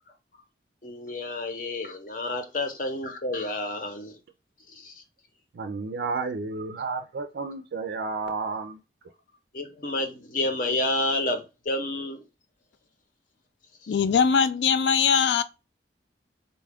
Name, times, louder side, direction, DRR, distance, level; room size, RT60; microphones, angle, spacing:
voice 1, 0.8-4.2 4.7-5.0 9.5-12.2, left 2 dB, 50° left, 0.8 m, -30 dB
voice 2, 5.5-8.8, right 4 dB, 70° right, 0.4 m, -31 dB
voice 3, 13.9-15.4, left 6 dB, 80° left, 0.4 m, -21 dB
4.0 x 2.3 x 3.4 m
head